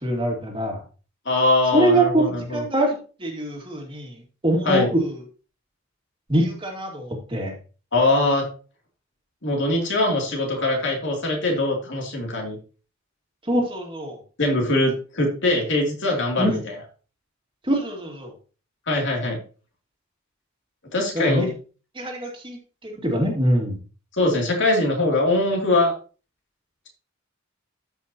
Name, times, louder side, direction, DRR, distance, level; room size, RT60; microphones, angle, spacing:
voice 1, 0.0-0.8 1.7-4.2 4.4-5.1 6.3-7.5 13.5-14.2 16.4-16.6 17.7-18.3 21.1-21.5 22.0-22.6 22.8-23.8, right 1 dB, 25° right, 0 dB, 2.3 m, -23 dB
voice 2, 1.2-2.6 4.6-4.9 7.9-8.5 9.4-12.6 14.4-16.7 18.9-19.4 20.9-21.5 24.1-25.9, left 2 dB, 60° left, 0 dB, 2.9 m, -22 dB
13.5 x 5.7 x 2.9 m, 0.36 s
head